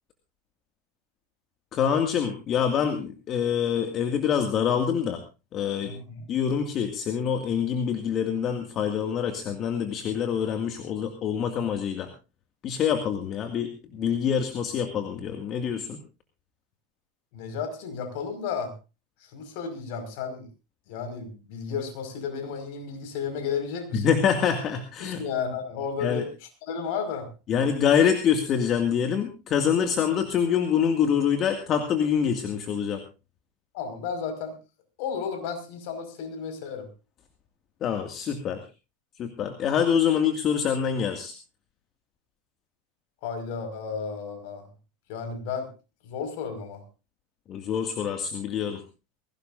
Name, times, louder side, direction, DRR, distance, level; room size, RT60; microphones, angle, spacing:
voice 1, 1.7-5.2 5.5-5.9 6.3-12.1 12.6-16.0 23.9-25.2 26.0-26.2 27.5-33.0 37.8-38.6 39.2-41.3 47.5-48.8, left 8 dB, 40° left, 6 dB, 2.1 m, -25 dB
voice 2, 5.8-6.2 17.3-18.7 19.3-20.5 20.9-24.1 25.0-26.3 26.6-27.3 33.7-34.5 35.0-36.9 43.2-44.7 45.1-45.7 46.0-46.8, left 6 dB, 60° left, 7 dB, 5.2 m, -33 dB
21.5 x 17.0 x 2.6 m, 0.31 s
hypercardioid pair, 90°, 0 cm